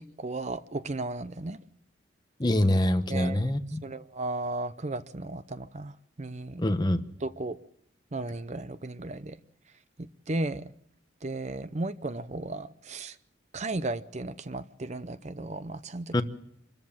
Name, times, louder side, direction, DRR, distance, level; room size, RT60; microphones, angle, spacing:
voice 1, 0.0-1.6 3.1-3.5 3.8-5.9 6.2-6.6 7.2-7.6 8.1-9.4 10.3-10.7 11.2-13.1 13.5-16.2, right 2 dB, 35° right, 0.7 m, -35 dB
voice 2, 2.4-3.8 6.6-7.0 16.1-16.2, left 1 dB, 20° left, 1.0 m, -25 dB
26.0 x 14.0 x 7.4 m
head